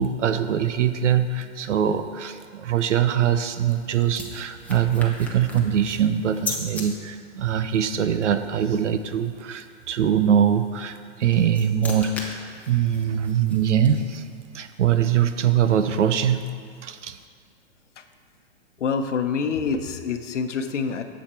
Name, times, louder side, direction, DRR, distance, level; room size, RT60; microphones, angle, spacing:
voice 1, 0.0-12.3 12.7-14.2 14.5-16.5 16.8-17.2, right 9 dB, 85° right, 10 dB, 0.8 m, -22 dB
sound 1, 3.2-6.9 11.0-14.4, left 3 dB, 5° left, 0.9 m, -38 dB
voice 2, 18.8-21.0, left 5 dB, 90° left, 7 dB, 0.9 m, -26 dB
10.5 x 7.4 x 4.4 m, 2.1 s
hypercardioid pair, 140°, 35 cm